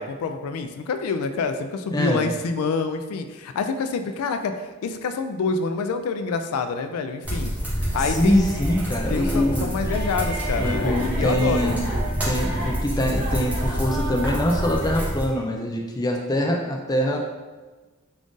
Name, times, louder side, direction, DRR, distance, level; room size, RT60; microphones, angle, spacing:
voice 1, 0.0-7.5 7.9-8.6 9.1-11.7, left 4 dB, 90° left, 8 dB, 0.3 m, -27 dB
voice 2, 1.9-2.2 8.0-9.8 10.6-11.9 12.2-17.2, left 1 dB, 20° left, 0 dB, 0.4 m, -24 dB
sound 1, 7.2-15.3, equal, 5° right, 0.9 m, -27 dB
sound 2, 7.8-15.4, right 2 dB, 60° right, 1.1 m, -35 dB
3.7 x 2.4 x 3.7 m, 1.3 s
head